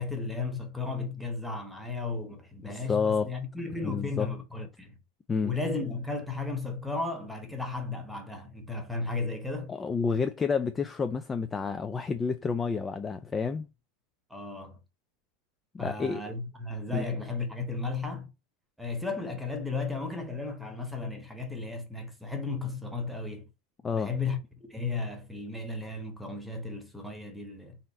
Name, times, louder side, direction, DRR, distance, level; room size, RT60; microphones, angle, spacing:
voice 1, 0.0-5.0 5.4-9.7 14.3-14.8 15.8-18.3 18.8-23.5 23.9-27.8, left 3 dB, ahead, 1.1 m, -34 dB
voice 2, 2.7-3.3 3.8-4.3 5.3-5.5 9.7-13.7 15.7-16.2 16.9-17.0 23.8-24.1, left 5 dB, 20° left, 0.4 m, -29 dB
4.0 x 2.5 x 4.1 m
supercardioid pair, 130°, 0 cm